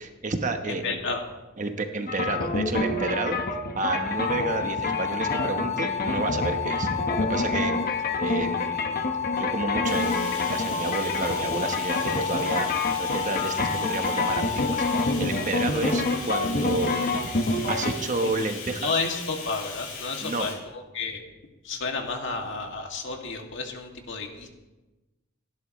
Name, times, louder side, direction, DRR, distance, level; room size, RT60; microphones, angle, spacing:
voice 1, 0.0-1.0 1.6-3.4 3.8-7.8 8.2-9.0 9.4-17.0 17.7-18.9 20.2-20.5, right 3 dB, 40° right, 5 dB, 1.1 m, -30 dB
voice 2, 0.7-1.3 18.2-18.3 18.8-21.2 21.6-24.5, left 4 dB, 65° left, 2 dB, 2.3 m, -31 dB
sound 1, 2.1-17.9, left 2 dB, 50° left, 1.2 m, -28 dB
sound 2, 3.9-15.1, left 8 dB, 35° left, 0.4 m, -31 dB
Bathtub (filling or washing), 9.8-20.5, left 5 dB, 85° left, 6.0 m, -39 dB
28.5 x 11.5 x 3.2 m, 1.1 s
head